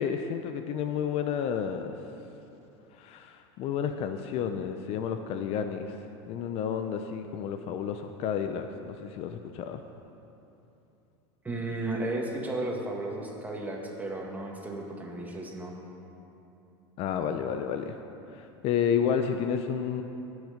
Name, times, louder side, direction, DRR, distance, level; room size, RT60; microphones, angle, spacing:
voice 1, 0.0-1.9 2.9-6.0 6.3-9.8 17.0-18.0 18.3-20.0, left 7 dB, 50° left, 7 dB, 0.6 m, -31 dB
voice 2, 11.4-15.8, right 2 dB, 10° right, -1 dB, 1.9 m, -34 dB
18.5 x 6.4 x 5.1 m, 2.9 s
supercardioid pair, 115°, 13 cm